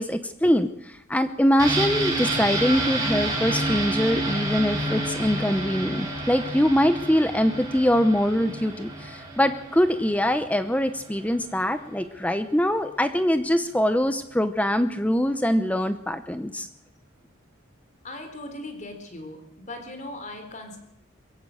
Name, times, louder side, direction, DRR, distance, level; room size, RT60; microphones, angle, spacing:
voice 1, 0.0-16.7, equal, 5° left, 10 dB, 0.8 m, -23 dB
sound 1, 1.6-11.2 11.5-11.6, right 2 dB, 20° right, 5.1 m, -29 dB
voice 2, 18.0-19.4 19.7-20.8, left 1 dB, 35° left, 6 dB, 4.0 m, -38 dB
22.5 x 16.0 x 7.9 m, 0.77 s
head